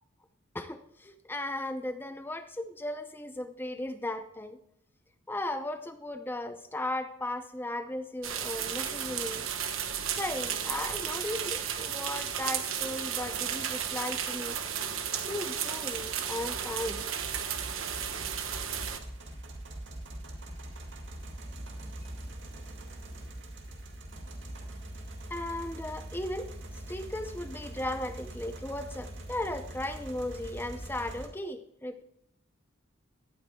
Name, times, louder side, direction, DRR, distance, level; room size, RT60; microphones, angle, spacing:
voice 1, 0.5-4.6 5.3-9.5 10.1-14.6 15.3-17.1 18.2-18.3 25.3-26.5 26.9-32.0, left 1 dB, 10° left, 9 dB, 0.6 m, -36 dB
sound 1, 8.2-19.0, right 8 dB, 85° right, 1.2 m, -34 dB
sound 2, 16.0-31.3, right 1 dB, 65° right, 2.1 m, -43 dB
17.5 x 9.0 x 2.3 m, 0.75 s
head